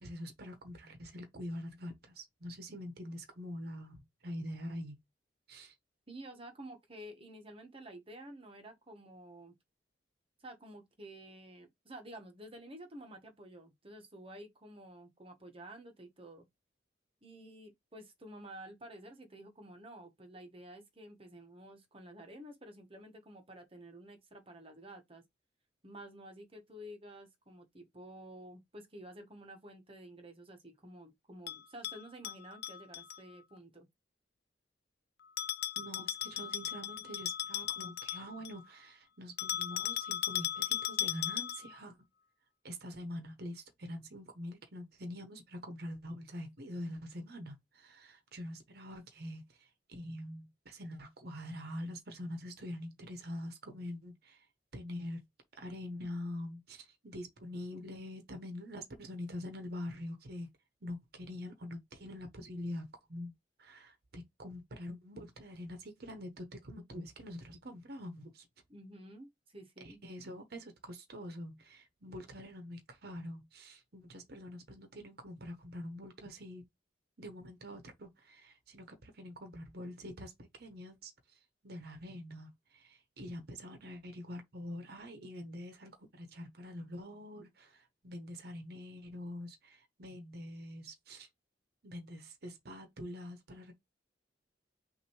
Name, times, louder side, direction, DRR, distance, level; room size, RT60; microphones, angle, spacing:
voice 1, 0.0-5.0 5.5-5.7 35.8-42.0 42.6-54.5 54.7-55.3 55.5-60.5 60.8-63.3 63.6-68.5 69.8-76.6 77.2-91.3 91.8-93.7, left 1 dB, 60° right, 1.0 m, -45 dB
voice 2, 6.1-9.5 10.4-16.5 17.2-25.2 25.8-33.9 68.7-70.0, right 1 dB, 30° right, 1.2 m, -51 dB
Bell, 31.5-33.2 35.4-38.6 39.4-41.8, left 12 dB, 60° left, 0.3 m, -37 dB
5.8 x 2.7 x 3.0 m
head